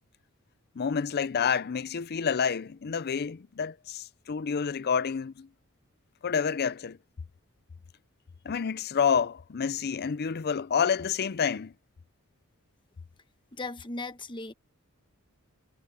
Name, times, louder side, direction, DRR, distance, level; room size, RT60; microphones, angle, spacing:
voice 1, 0.8-5.5 6.2-7.0 8.4-11.7, left 6 dB, 45° left, 0.5 m, -28 dB
voice 2, 13.5-14.5, left 3 dB, 20° left, 1.2 m, -37 dB
head